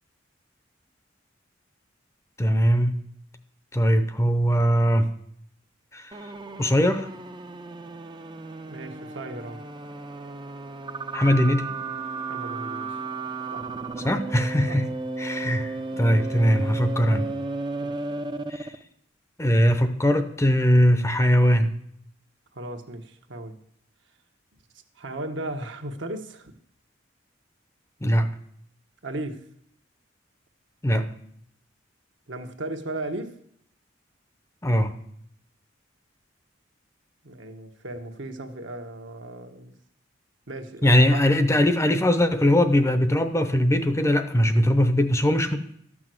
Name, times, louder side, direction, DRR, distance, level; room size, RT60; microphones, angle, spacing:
voice 1, 2.4-3.0 3.7-5.1 5.9-6.1 6.6-7.1 11.1-11.7 14.0-14.9 15.2-17.3 18.5-18.7 19.4-21.7 28.0-28.3 30.8-31.1 34.6-35.0 40.8-45.6, equal, 15° left, 9 dB, 0.7 m, -21 dB
sound 1, 6.1-18.8, right 3 dB, 25° right, 0.6 m, -34 dB
voice 2, 8.7-9.6 12.3-13.0 13.5-13.7 14.7-14.8 15.9-16.3 17.8-18.1 22.5-23.6 24.9-26.5 29.0-29.5 32.3-33.4 37.2-39.7 40.5-41.2, right 2 dB, 70° right, 5 dB, 1.2 m, -36 dB
13.0 x 6.1 x 7.7 m, 0.70 s
head